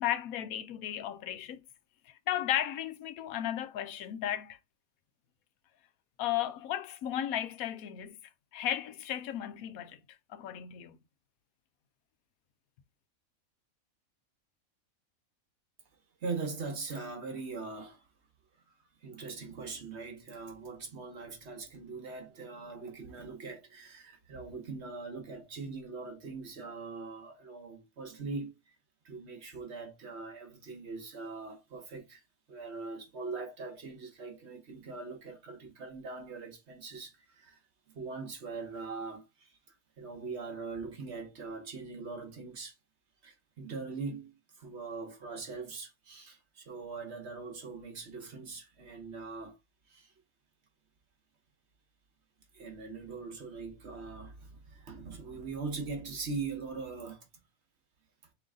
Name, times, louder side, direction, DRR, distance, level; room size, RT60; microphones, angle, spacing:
voice 1, 0.0-1.6 2.1-4.6 6.2-8.2 8.5-10.0 10.3-11.0, left 11 dB, 85° left, 1.1 m, -34 dB
voice 2, 16.2-18.0 19.0-28.7 29.0-32.2 32.5-37.6 37.9-39.6 40.0-42.7 43.2-49.6 49.9-50.1 52.5-57.3, right 4 dB, 55° right, 1.3 m, -41 dB
3.8 x 3.2 x 3.5 m
omnidirectional pair, 1.5 m